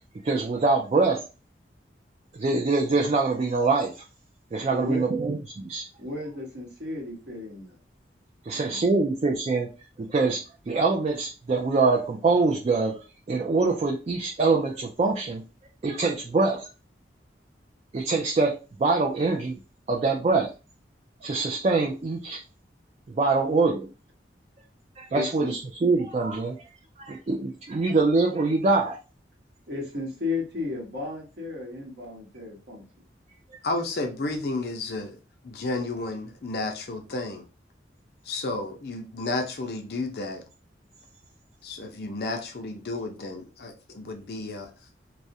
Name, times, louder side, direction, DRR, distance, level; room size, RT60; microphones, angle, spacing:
voice 1, 0.2-1.2 2.4-3.9 4.5-5.8 8.4-9.7 10.0-10.4 10.7-15.4 15.8-16.7 17.9-19.6 19.9-20.5 21.2-22.4 23.1-23.9 25.0-26.6 27.0-29.0, right 3 dB, 35° right, 0.3 m, -24 dB
voice 2, 4.7-5.1 6.0-7.8 25.1-25.5 29.7-32.8, left 3 dB, 70° right, 1.0 m, -34 dB
voice 3, 33.6-35.2 35.4-37.5 38.2-40.4 41.6-44.7, left 2 dB, 60° left, 0.5 m, -32 dB
2.3 x 2.1 x 2.6 m
head